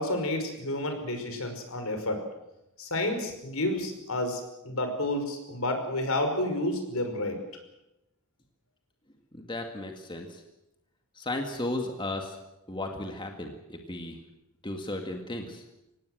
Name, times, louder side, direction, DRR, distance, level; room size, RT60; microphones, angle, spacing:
voice 1, 0.0-2.2 2.8-7.4, left 1 dB, 75° left, 6 dB, 5.4 m, -30 dB
voice 2, 9.3-10.4 11.2-12.4 12.7-14.2 14.6-15.6, left 2 dB, 20° left, 3 dB, 2.1 m, -35 dB
25.0 x 18.5 x 7.9 m, 0.93 s
head